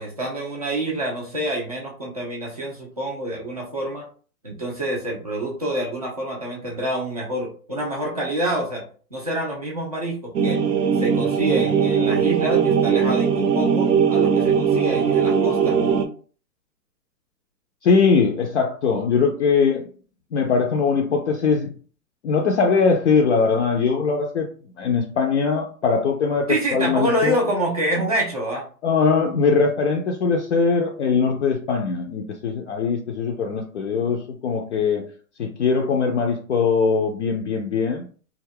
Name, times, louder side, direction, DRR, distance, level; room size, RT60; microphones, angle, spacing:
voice 1, 0.0-4.1 4.4-8.8 9.1-10.6 11.0-15.9 26.5-28.7, right 1 dB, 25° right, -2 dB, 0.3 m, -27 dB
sound 1, 10.3-16.0, right 6 dB, 75° right, 0.6 m, -20 dB
voice 2, 17.8-19.9 20.3-21.7 22.2-24.5 24.8-27.3 28.8-35.0 35.4-38.1, left 5 dB, 50° left, 2 dB, 0.4 m, -21 dB
2.3 x 2.0 x 3.3 m, 0.41 s
hypercardioid pair, 130°, 49 cm